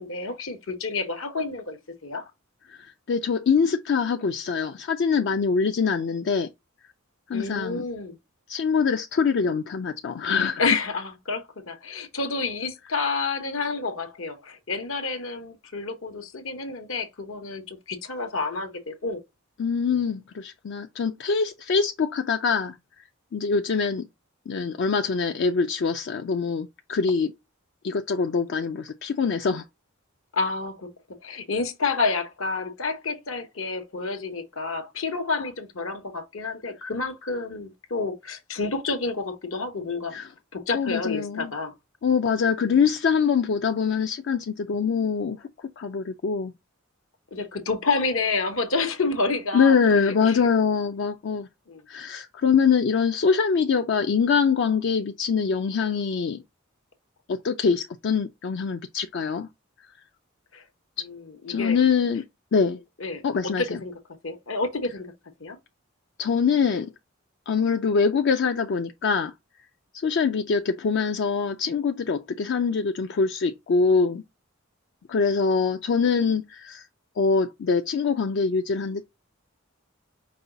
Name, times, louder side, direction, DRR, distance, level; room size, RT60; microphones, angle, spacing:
voice 1, 0.0-2.3 7.3-8.2 10.6-19.2 19.9-20.0 30.3-30.9 31.2-40.1 40.5-41.7 42.6-42.9 47.3-50.5 51.7-51.8 60.5-60.6 61.0-61.8 63.0-65.1 65.4-65.6, left 3 dB, 75° left, 1.1 m, -29 dB
voice 2, 2.7-6.5 7.3-7.8 8.5-10.6 19.6-23.0 23.3-24.1 24.5-27.3 27.8-29.6 40.1-40.3 40.7-41.5 42.0-46.5 49.5-51.5 51.9-56.4 57.3-59.5 61.5-62.2 62.5-62.8 63.2-63.8 66.2-66.9 67.5-69.3 70.0-74.2 75.1-76.9 77.2-79.0, left 5 dB, 55° left, 0.4 m, -24 dB
5.4 x 2.3 x 3.9 m
head